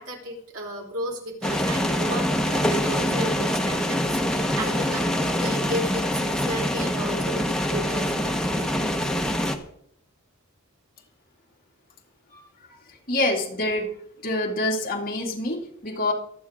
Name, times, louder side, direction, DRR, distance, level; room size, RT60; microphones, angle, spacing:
voice 1, 0.0-8.8, equal, 80° right, 0 dB, 3.9 m, -34 dB
sound 1, 1.4-9.6, equal, 5° left, 1.0 m, -25 dB
voice 2, 13.1-13.9 14.2-16.1, left 2 dB, 40° left, -1 dB, 2.7 m, -26 dB
24.5 x 8.8 x 3.7 m, 0.70 s
head